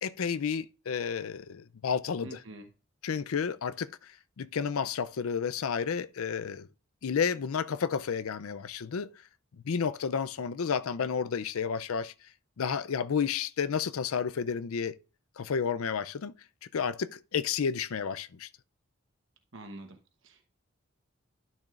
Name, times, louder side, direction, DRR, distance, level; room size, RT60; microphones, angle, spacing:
voice 1, 0.0-2.4 3.0-6.7 7.0-9.1 9.6-12.1 12.6-15.0 15.4-16.3 16.7-18.5, left 6 dB, 80° left, 0.5 m, -31 dB
voice 2, 2.2-2.7 19.5-20.4, right 2 dB, 60° right, 1.0 m, -46 dB
12.0 x 6.3 x 2.4 m
head